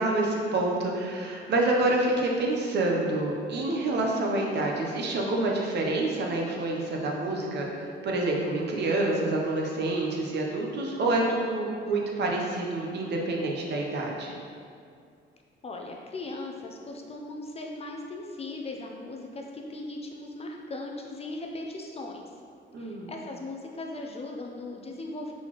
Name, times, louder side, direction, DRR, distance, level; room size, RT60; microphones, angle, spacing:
voice 1, 0.0-14.3 22.7-23.1, right 2 dB, 60° right, -1 dB, 0.8 m, -27 dB
voice 2, 15.6-22.2 22.8-25.3, left 2 dB, 30° left, 1 dB, 0.5 m, -38 dB
4.1 x 4.0 x 3.0 m, 2.3 s
cardioid pair, 90°, 20 cm